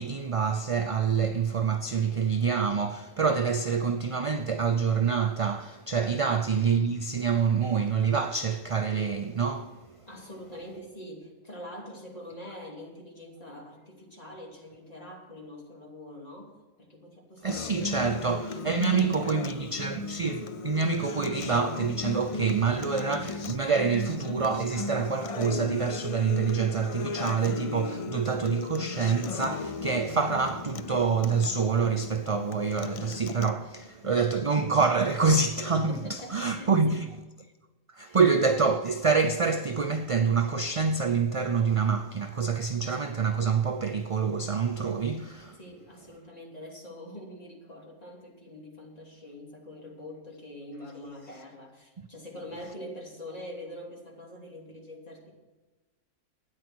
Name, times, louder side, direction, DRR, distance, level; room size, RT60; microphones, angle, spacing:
voice 1, 0.0-10.0 17.4-37.1 37.9-45.6, right 5 dB, 50° right, 0.4 m, -26 dB
voice 2, 10.1-19.7 20.4-20.6 34.0-34.3 35.7-37.0 38.1-38.2 45.6-55.3, left 1 dB, 30° left, 3.0 m, -44 dB
Acoustic guitar, 17.5-33.5, left 4 dB, 60° left, 0.3 m, -36 dB
13.0 x 9.6 x 6.2 m
omnidirectional pair, 1.3 m